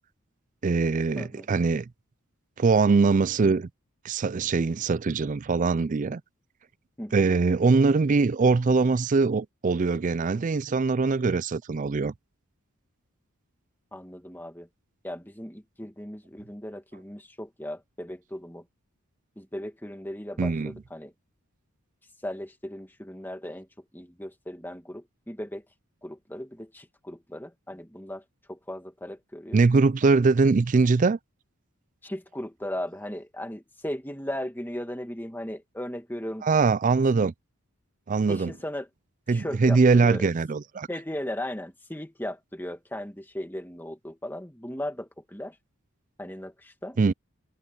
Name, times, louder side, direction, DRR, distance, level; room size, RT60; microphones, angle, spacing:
voice 1, 0.6-1.9 2.6-3.7 4.0-6.2 7.1-12.1 20.4-20.7 29.5-31.2 36.4-37.3 38.1-38.5 39.3-40.9 47.0-47.1, right 4 dB, 35° right, 0.4 m, -22 dB
voice 2, 1.1-1.5 7.0-7.3 13.9-14.7 15.0-18.6 19.4-21.1 22.2-25.6 26.0-29.6 32.0-36.5 38.3-38.9 39.3-40.3 40.9-45.6 46.2-47.0, left 1 dB, 10° left, 2.2 m, -37 dB
head